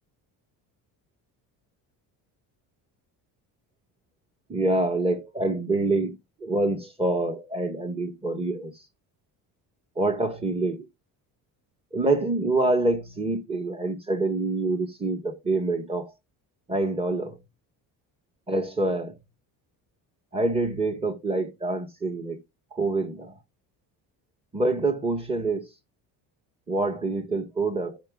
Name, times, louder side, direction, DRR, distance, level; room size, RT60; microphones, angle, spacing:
voice 1, 4.5-6.1 6.4-8.7 10.0-10.9 11.9-16.1 16.7-17.4 18.5-19.2 20.3-22.4 22.7-23.3 24.5-25.7 26.7-28.0, right 2 dB, 15° right, 1.5 m, -26 dB
14.5 x 5.1 x 2.4 m
cardioid pair, 135°, 39 cm